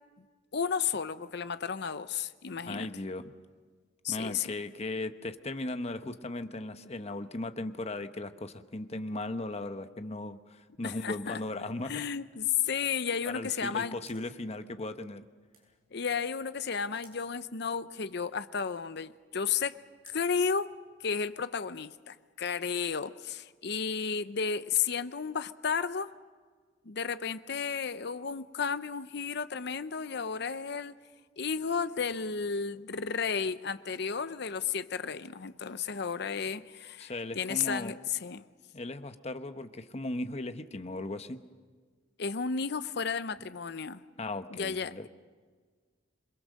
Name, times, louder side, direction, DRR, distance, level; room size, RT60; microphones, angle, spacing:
voice 1, 0.5-2.9 4.0-4.5 10.8-11.4 11.8-14.0 15.9-19.8 20.0-20.7 21.0-26.1 26.8-31.0 31.4-38.4 42.2-44.0 44.5-45.1, left 6 dB, 60° left, 13 dB, 0.7 m, -33 dB
voice 2, 2.7-3.3 4.1-12.0 13.3-15.2 37.0-37.9 38.7-41.4 44.2-45.1, left 2 dB, 35° left, 9 dB, 1.0 m, -37 dB
sound 1, 10.9-21.3, right 4 dB, 50° right, 7.9 m, -67 dB
27.0 x 22.5 x 6.5 m, 1.5 s
head